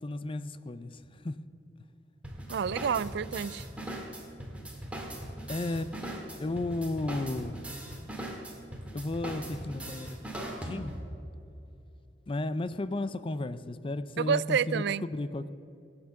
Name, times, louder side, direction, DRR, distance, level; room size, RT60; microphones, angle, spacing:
voice 1, 0.0-1.4 4.7-4.8 5.5-6.0 6.4-7.6 8.9-11.0 12.3-15.5, left 2 dB, 30° left, 0.5 m, -34 dB
sound 1, 2.2-11.2, right 1 dB, 5° right, 2.0 m, -40 dB
voice 2, 2.5-3.7 14.2-15.0, right 7 dB, 65° right, 0.4 m, -29 dB
17.0 x 8.9 x 7.0 m
head